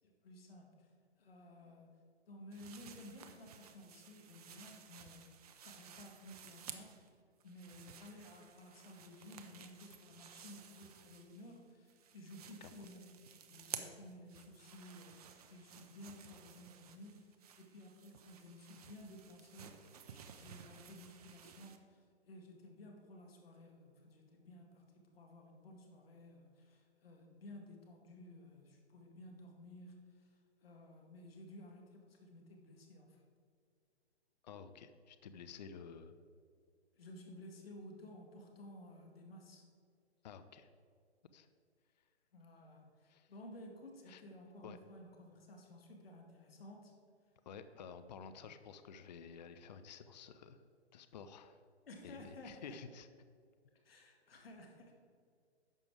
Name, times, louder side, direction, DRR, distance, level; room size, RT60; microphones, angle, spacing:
voice 1, 0.0-0.9 1.2-1.9 2.3-7.0 7.4-19.8 20.1-33.2 36.9-39.7 42.3-46.9 48.3-48.6 51.9-52.8 53.8-55.0, left 1 dB, 60° left, 1 dB, 2.1 m, -55 dB
sound 1, 2.5-7.1 7.4-11.6 11.9-21.8, right 8 dB, 35° right, 0.7 m, -54 dB
voice 2, 34.4-36.1 40.2-40.7 41.3-41.5 43.1-43.3 44.1-44.2 44.6-44.8 47.5-50.6 50.9-51.6 52.0-53.1, left 6 dB, 40° left, 10 dB, 0.6 m, -52 dB
11.0 x 6.9 x 4.8 m, 2.2 s
figure-of-eight pair, 135°, 33 cm